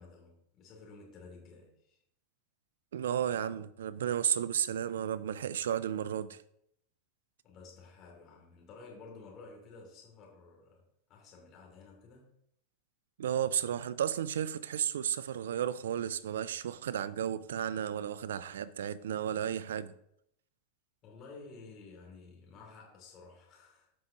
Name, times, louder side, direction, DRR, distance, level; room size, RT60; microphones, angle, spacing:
voice 1, 0.0-2.0 7.4-10.8 11.1-12.3 21.0-23.9, left 4 dB, 40° left, 2.7 m, -52 dB
voice 2, 2.9-6.4 13.2-19.9, right 9 dB, 75° right, 0.5 m, -33 dB
14.0 x 5.5 x 2.9 m
hypercardioid pair, 95°, 0 cm